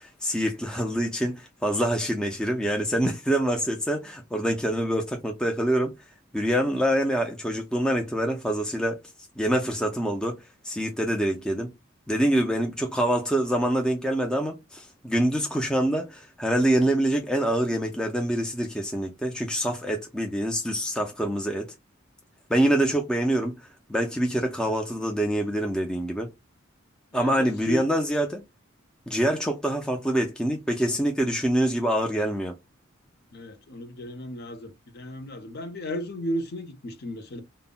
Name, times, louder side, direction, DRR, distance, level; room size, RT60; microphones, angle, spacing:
voice 1, 0.0-5.9 6.3-9.0 9.4-10.4 10.6-11.7 12.1-21.7 22.5-23.6 23.9-26.3 27.1-28.4 29.1-32.5, right 1 dB, 5° left, 0.3 m, -25 dB
voice 2, 27.1-27.8 33.3-37.4, left 1 dB, 50° left, 0.6 m, -34 dB
2.0 x 2.0 x 3.6 m
head